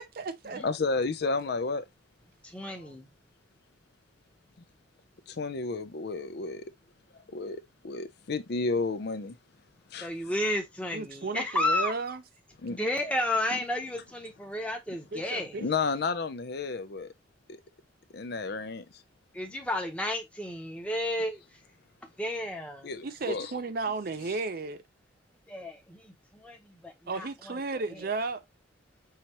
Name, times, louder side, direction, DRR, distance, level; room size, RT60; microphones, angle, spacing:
voice 1, 0.0-0.6 10.9-12.2 15.1-15.7 23.0-24.8 27.1-28.4, right 3 dB, 50° right, 0.5 m, -34 dB
voice 2, 0.6-1.9 2.7-2.9 5.3-6.6 7.1-9.4 9.9-10.1 12.6-12.8 13.5-13.6 15.6-17.1 18.1-18.9 22.8-23.5, left 4 dB, 55° left, 0.5 m, -32 dB
voice 3, 2.4-3.1 10.0-11.9 12.7-15.6 19.3-21.6 22.2-22.9 25.5-27.6 27.9-28.1, left 1 dB, 5° left, 0.9 m, -32 dB
5.7 x 2.9 x 2.9 m
head